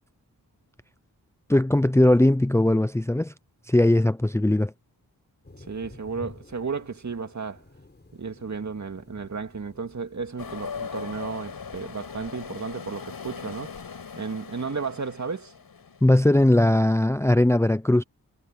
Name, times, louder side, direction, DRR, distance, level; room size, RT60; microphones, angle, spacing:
voice 1, 1.5-3.3 3.7-4.7 16.0-18.0, left 1 dB, 5° left, 0.6 m, -19 dB
Thunder, 5.4-14.2, left 2 dB, 30° left, 6.1 m, -51 dB
voice 2, 5.6-7.6 8.1-13.7 14.2-15.5, right 5 dB, 50° right, 2.2 m, -33 dB
sound 1, 10.4-17.0, left 6 dB, 75° left, 5.9 m, -40 dB
cardioid pair, 50°, 36 cm